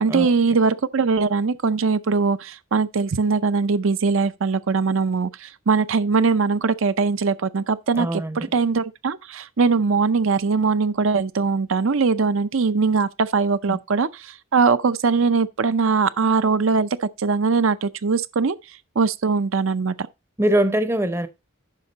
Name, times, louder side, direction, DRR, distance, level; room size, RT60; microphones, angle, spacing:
voice 1, 0.0-18.6 19.0-20.1, right 4 dB, 70° right, 0.6 m, -21 dB
voice 2, 8.0-8.5 13.7-13.8 20.4-21.3, right 1 dB, 10° right, 0.6 m, -22 dB
9.8 x 5.8 x 4.0 m
head